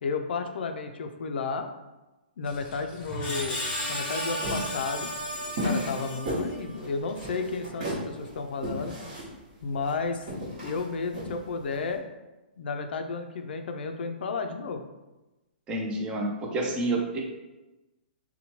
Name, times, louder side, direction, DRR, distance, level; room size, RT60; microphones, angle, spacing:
voice 1, 0.0-1.7 2.4-5.1 5.6-9.0 9.6-12.0 12.6-14.8, left 4 dB, 70° left, 6 dB, 0.3 m, -32 dB
Screech, 2.4-6.7, left 1 dB, 20° left, 0.7 m, -34 dB
sound 1, 4.4-11.9, equal, 50° right, 1.1 m, -34 dB
voice 2, 15.7-17.2, right 2 dB, 15° right, 0 dB, 0.4 m, -29 dB
2.8 x 2.2 x 2.9 m, 1.1 s
hypercardioid pair, 155°, 6 cm